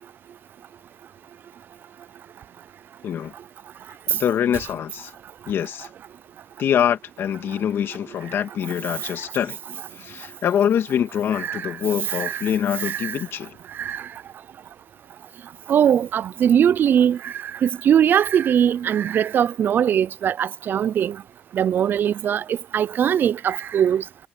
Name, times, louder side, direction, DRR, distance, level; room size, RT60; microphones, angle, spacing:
voice 1, 3.0-3.3 4.1-5.1 5.5-5.9 6.6-9.6 9.9-13.6, left 9 dB, 65° left, 2.3 m, -24 dB
voice 2, 11.4-11.7 12.1-12.4 12.8-13.2 13.8-14.0 15.7-21.2 21.5-24.0, right 9 dB, 50° right, 0.4 m, -21 dB
cardioid pair, 105°, 4 cm